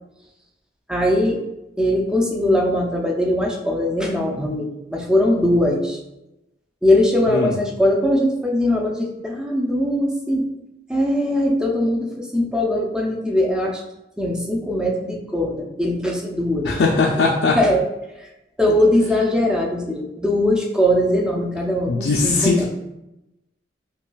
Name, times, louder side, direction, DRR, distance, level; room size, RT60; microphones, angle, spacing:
voice 1, 0.9-1.4 1.8-6.0 6.8-10.5 10.9-13.8 14.2-16.7 17.5-17.8 18.2-18.3 18.6-22.7, left 1 dB, 5° right, 0 dB, 0.4 m, -20 dB
voice 2, 16.6-17.6 21.9-22.7, left 3 dB, 75° left, -2 dB, 0.4 m, -19 dB
5.5 x 2.2 x 2.3 m, 0.93 s
head